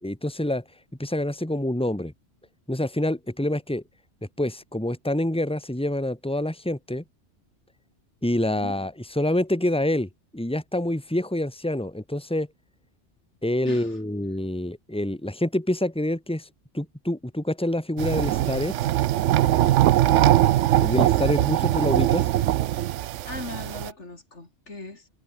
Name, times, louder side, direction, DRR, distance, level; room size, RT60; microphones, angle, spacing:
voice 1, 0.0-0.6 1.0-2.1 2.7-3.8 4.4-7.0 8.2-12.5 13.4-16.5 16.7-18.7 20.8-22.3, left 1 dB, 5° left, 2.6 m, -26 dB
voice 2, 8.5-8.8 13.7-14.0 20.0-20.3 23.3-25.1, left 2 dB, 80° left, 4.4 m, -39 dB
sound 1, 18.0-23.9, right 13 dB, 90° right, 0.9 m, -21 dB
omnidirectional pair, 1.2 m